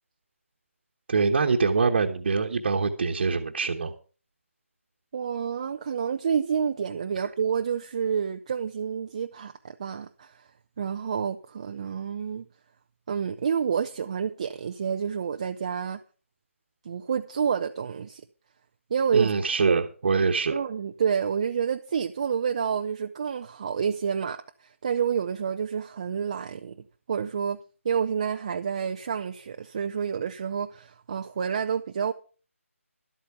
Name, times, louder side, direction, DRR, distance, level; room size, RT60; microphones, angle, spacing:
voice 1, 1.1-3.9 19.1-20.6, right 4 dB, 45° right, 1.2 m, -24 dB
voice 2, 5.1-10.5 10.8-12.5 13.1-16.0 16.8-18.2 18.9-19.3 19.7-19.8 20.5-26.8 27.1-27.6 27.8-32.1, right 7 dB, 25° right, 0.5 m, -29 dB
12.0 x 8.4 x 5.8 m
figure-of-eight pair, 165°, 8 cm